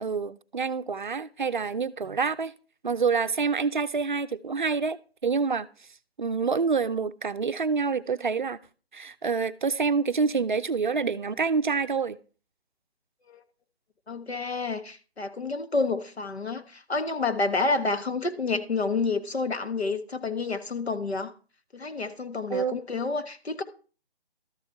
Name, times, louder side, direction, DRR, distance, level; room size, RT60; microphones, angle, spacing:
voice 1, 0.0-2.5 2.8-5.0 5.2-5.7 6.2-8.6 8.9-12.2 22.5-22.8, right 5 dB, 50° right, 0.5 m, -27 dB
voice 2, 14.1-21.3 21.7-23.6, left 3 dB, 75° left, 1.5 m, -29 dB
13.0 x 7.0 x 4.5 m
figure-of-eight pair, 155°, 32 cm